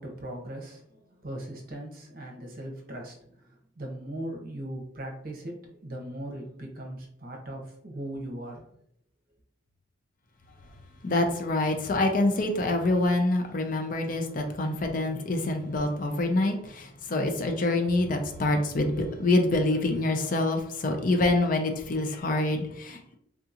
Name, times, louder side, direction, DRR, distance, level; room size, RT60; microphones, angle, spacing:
voice 1, 0.0-8.6, right 1 dB, 50° right, 1 dB, 0.8 m, -39 dB
voice 2, 11.0-23.2, left 2 dB, 45° left, 5 dB, 0.5 m, -26 dB
3.6 x 2.9 x 2.5 m, 0.69 s
head